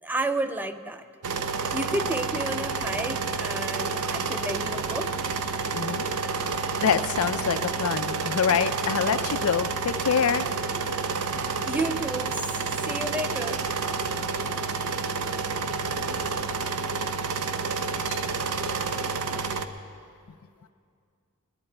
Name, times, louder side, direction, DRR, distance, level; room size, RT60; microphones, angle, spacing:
voice 1, 0.0-1.1 1.7-5.2 11.7-12.6 12.8-13.6, right 1 dB, 10° right, 9 dB, 0.4 m, -31 dB
sound 1, 1.2-19.6, right 4 dB, 85° right, 0.7 m, -29 dB
voice 2, 5.7-6.0 6.8-10.5 18.1-18.2, left 7 dB, 70° left, 12 dB, 0.5 m, -25 dB
20.5 x 11.0 x 4.4 m, 2.3 s
head